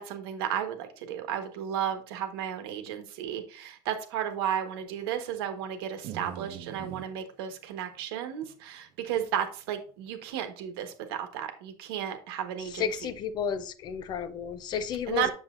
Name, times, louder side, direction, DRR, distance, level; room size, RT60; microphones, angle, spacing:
voice 1, 0.0-12.9 15.1-15.3, right 9 dB, 80° right, 1.3 m, -33 dB
sound 1, 6.0-7.1 8.4-8.5 9.2-9.3, right 9 dB, 50° right, 0.9 m, -41 dB
voice 2, 12.7-15.3, left 8 dB, 35° left, 0.5 m, -32 dB
7.3 x 7.1 x 2.5 m
supercardioid pair, 140°, 12 cm